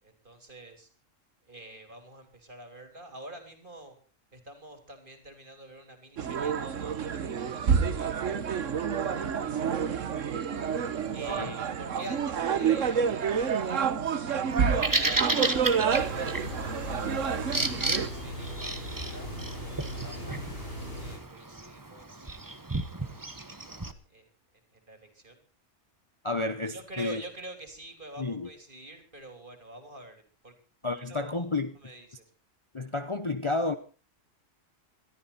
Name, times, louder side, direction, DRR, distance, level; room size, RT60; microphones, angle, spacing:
voice 1, 0.0-0.9 1.4-4.0 4.3-8.7 9.0-10.4 11.1-15.5 16.1-19.3 19.9-22.3 23.0-24.3 24.7-25.4 26.7-30.5 30.8-32.2, right 1 dB, 40° right, 3.8 m, -47 dB
sound 1, 6.2-18.1, right 7 dB, 75° right, 1.5 m, -28 dB
Bird vocalization bird call bird song, 14.5-23.9, right 2 dB, 15° right, 1.1 m, -33 dB
sound 2, 15.9-21.2, equal, 50° left, 8.4 m, -39 dB
voice 2, 26.2-27.2 28.2-28.5 30.8-31.7 32.7-33.7, left 2 dB, 25° left, 0.9 m, -31 dB
21.5 x 13.5 x 4.2 m
omnidirectional pair, 1.3 m